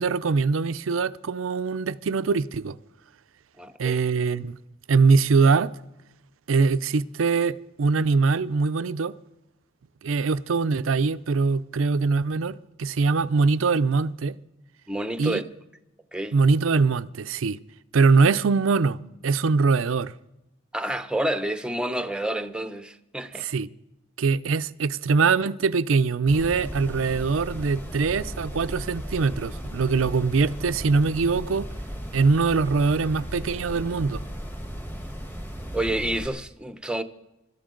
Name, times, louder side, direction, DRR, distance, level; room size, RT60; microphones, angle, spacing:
voice 1, 0.0-2.8 3.8-4.6 4.9-5.7 6.5-9.1 10.0-14.4 15.2-15.4 16.3-17.6 17.9-19.0 19.2-20.1 23.4-23.7 24.2-31.7 32.1-34.2, right 4 dB, 75° right, 0.5 m, -22 dB
voice 2, 3.6-4.0 14.9-15.4 16.1-16.3 20.7-23.5 35.7-37.0, right 1 dB, 5° right, 0.7 m, -29 dB
sound 1, 26.3-36.3, equal, 10° left, 1.3 m, -36 dB
25.0 x 13.0 x 3.8 m
head